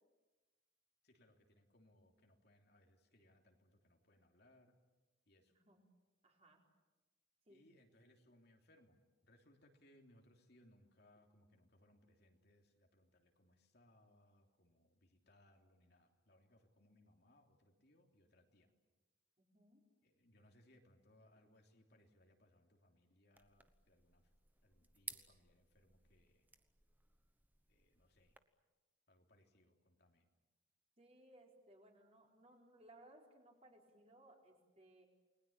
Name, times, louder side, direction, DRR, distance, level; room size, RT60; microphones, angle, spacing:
voice 1, 1.0-4.7 5.2-5.5 7.5-9.0 9.2-18.7 20.0-24.3 24.6-26.5 27.7-28.3 29.1-30.3, left 1 dB, 55° left, 2 dB, 3.1 m, -70 dB
voice 2, 5.5-5.8 6.2-6.6 7.5-7.7 19.4-19.8 31.0-35.1, right 1 dB, 30° right, 0 dB, 4.5 m, -64 dB
sound 1, 23.3-28.4, right 3 dB, 10° right, 1.0 m, -57 dB
29.5 x 21.0 x 8.7 m, 1.2 s
head